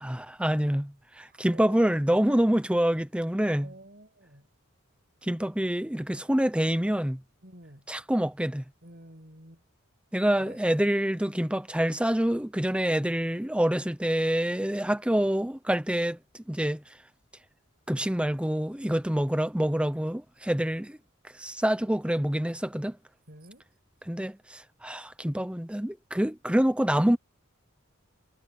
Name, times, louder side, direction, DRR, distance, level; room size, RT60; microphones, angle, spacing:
voice 1, 0.0-3.7 5.2-7.2 7.9-8.6 10.1-16.8 17.9-21.0 21.3-23.0 24.1-27.2, right 1 dB, 5° right, 0.8 m, -26 dB
voice 2, 1.2-2.6 3.6-4.5 7.4-7.8 8.8-9.6 10.4-10.6 23.3-23.7, right 1 dB, 50° right, 7.3 m, -49 dB
head